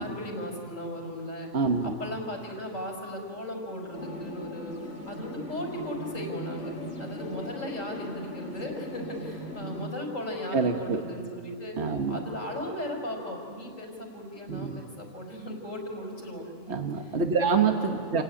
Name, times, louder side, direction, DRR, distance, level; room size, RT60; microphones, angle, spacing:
voice 1, 0.0-1.5 1.8-4.8 5.1-11.8 12.1-16.8 17.4-17.9 18.1-18.2, left 1 dB, 75° left, 1 dB, 5.3 m, -37 dB
voice 2, 1.5-2.0 10.5-11.0 11.8-12.2 14.5-14.9 16.7-18.2, right 5 dB, 55° right, 4 dB, 1.6 m, -26 dB
sound 1, 3.9-9.9, left 1 dB, 55° left, 2.5 m, -39 dB
28.5 x 16.5 x 9.9 m, 2.5 s
omnidirectional pair, 1.4 m